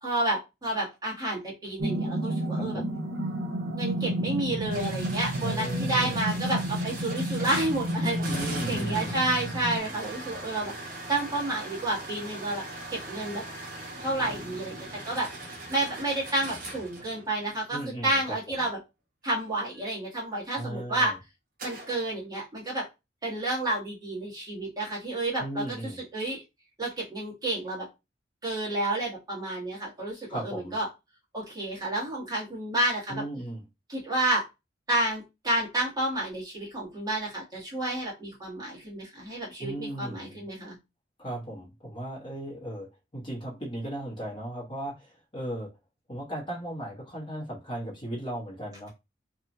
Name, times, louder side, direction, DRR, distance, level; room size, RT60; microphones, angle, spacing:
voice 1, 0.0-2.8 3.7-10.7 11.1-12.6 12.9-13.4 14.0-18.8 19.2-21.2 21.6-22.9 23.2-26.4 26.8-27.9 28.4-30.9 31.3-33.2 33.9-34.4 34.9-40.8, right 2 dB, 20° right, 1.3 m, -30 dB
sound 1, 1.8-9.8, equal, 85° right, 0.8 m, -31 dB
voice 2, 2.5-2.9 5.4-6.2 8.3-9.2 17.7-18.2 20.5-21.1 25.4-26.0 30.3-30.8 33.1-33.6 39.6-40.5 41.2-45.7 46.1-48.9, right 1 dB, 25° left, 1.0 m, -36 dB
sound 2, 4.7-17.7 21.6-22.1, right 2 dB, 50° right, 0.9 m, -40 dB
2.9 x 2.4 x 2.6 m
head